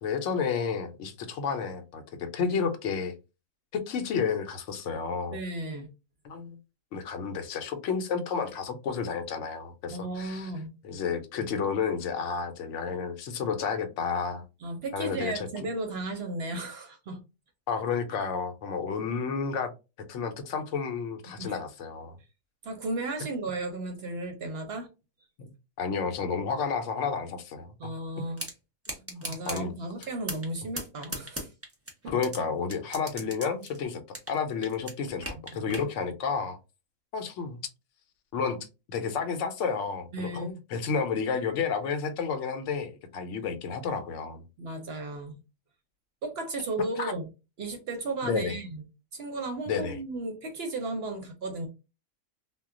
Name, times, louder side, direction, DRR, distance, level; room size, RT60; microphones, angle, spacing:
voice 1, 0.0-3.2 3.7-5.4 6.2-6.6 6.9-10.5 10.8-14.4 14.9-15.7 17.7-19.7 20.1-22.1 25.4-25.5 25.8-27.7 29.1-29.7 32.1-34.0 34.3-36.6 37.1-37.7 38.3-44.4 47.0-47.1 48.2-48.6 49.7-50.0, left 6 dB, 70° left, 0.9 m, -31 dB
voice 2, 5.3-5.9 9.9-10.7 14.6-17.2 21.4-21.6 22.6-24.9 27.8-28.4 29.2-31.5 32.0-32.1 35.5-35.8 40.1-40.5 44.6-45.4 46.2-47.3 47.6-48.8 49.1-51.7, right 2 dB, 60° right, 0.7 m, -34 dB
sound 1, 28.4-28.5 28.8-29.6 30.0-30.5 30.8-32.4 32.7-34.4 34.6-35.9, right 1 dB, 15° right, 0.5 m, -36 dB
2.3 x 2.1 x 3.6 m
omnidirectional pair, 1.4 m